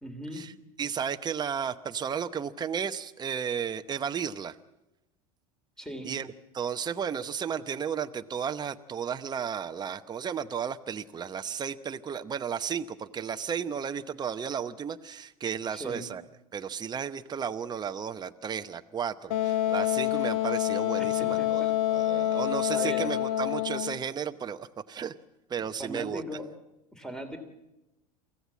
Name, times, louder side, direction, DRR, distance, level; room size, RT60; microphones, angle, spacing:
voice 1, 0.0-0.4 5.8-6.1 15.7-16.1 21.0-21.7 22.7-23.1 25.6-26.5 26.9-27.4, equal, 5° left, 7 dB, 3.1 m, -39 dB
voice 2, 0.8-4.5 6.0-6.3 6.5-16.2 16.5-25.1 25.5-26.2, right 7 dB, 20° right, 8 dB, 0.9 m, -33 dB
Wind instrument woodwind instrument, 19.3-24.0, left 13 dB, 65° left, 1.2 m, -27 dB
24.0 x 16.0 x 7.4 m, 0.93 s
hypercardioid pair, 95°, 19 cm